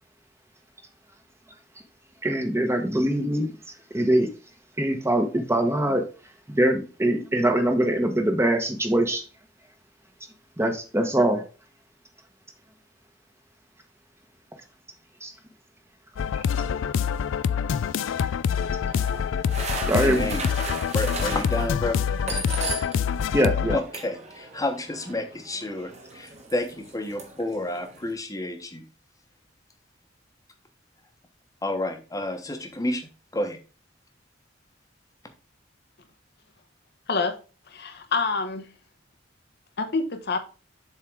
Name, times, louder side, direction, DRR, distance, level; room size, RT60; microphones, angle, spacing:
voice 1, 2.2-3.5 3.9-4.3 4.8-6.0 6.5-9.2 10.6-11.4 15.2-15.3 19.9-20.3 23.3-23.8, right 1 dB, 15° right, 1.0 m, -23 dB
sound 1, 16.2-23.8, left 7 dB, 75° left, 0.3 m, -26 dB
sound 2, 18.5-23.2 23.4-28.1, right 3 dB, 35° right, 1.5 m, -37 dB
voice 2, 19.9-20.5 20.9-22.0 23.7-28.8 31.6-33.6, left 1 dB, 20° left, 1.0 m, -30 dB
voice 3, 37.7-38.7 39.8-40.4, left 4 dB, 60° left, 0.9 m, -27 dB
7.3 x 3.7 x 4.6 m
head